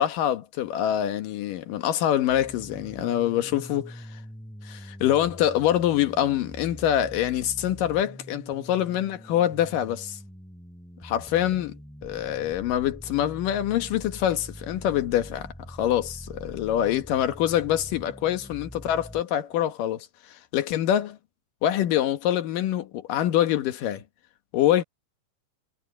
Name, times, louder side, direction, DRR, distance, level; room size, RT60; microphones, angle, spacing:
voice 1, 0.0-4.0 4.6-10.2 11.0-11.7 12.0-21.2 21.6-24.0 24.5-24.8, left 11 dB, 85° left, 3.0 m, -25 dB
sound 1, 2.3-19.2, equal, ahead, 5.5 m, -44 dB
omnidirectional pair, 3.8 m